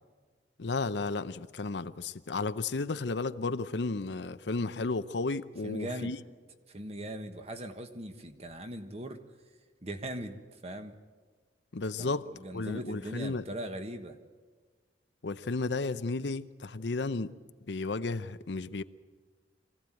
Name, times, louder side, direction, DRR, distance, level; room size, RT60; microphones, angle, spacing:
voice 1, 0.6-6.2 11.7-13.4 15.2-17.3 17.7-18.8, left 3 dB, 80° left, 0.7 m, -33 dB
voice 2, 5.6-6.1 6.7-9.2 9.8-11.0 12.0-14.2, right 1 dB, 35° right, 1.4 m, -40 dB
23.5 x 16.0 x 9.1 m
head